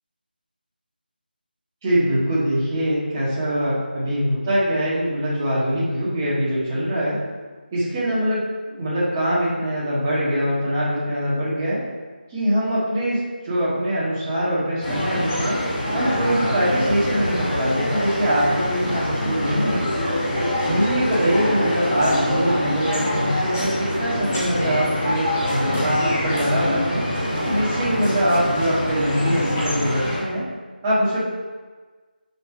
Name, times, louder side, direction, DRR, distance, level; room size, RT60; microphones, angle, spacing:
voice 1, 1.8-7.2 7.7-11.8 12.3-15.6 15.9-19.8 20.7-27.0 27.4-30.4 30.8-31.2, equal, 15° right, -9 dB, 1.7 m, -23 dB
sound 1, 14.8-30.2, left 1 dB, 15° left, 1.1 m, -24 dB
5.7 x 5.7 x 4.6 m, 1.4 s
figure-of-eight pair, 170°, 5 cm